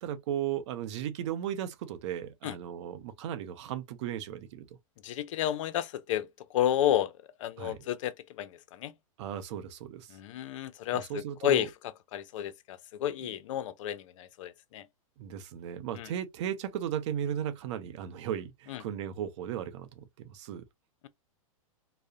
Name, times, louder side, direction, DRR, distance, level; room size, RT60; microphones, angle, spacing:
voice 1, 0.0-4.7 7.6-7.9 9.2-10.2 10.9-11.7 15.2-20.6, right 10 dB, 55° right, 0.5 m, -36 dB
voice 2, 5.0-7.1 7.4-8.9 10.1-11.7 12.1-14.9 15.9-16.1 18.7-18.8, left 11 dB, 60° left, 0.4 m, -31 dB
2.3 x 2.0 x 2.7 m
hypercardioid pair, 130°, 18 cm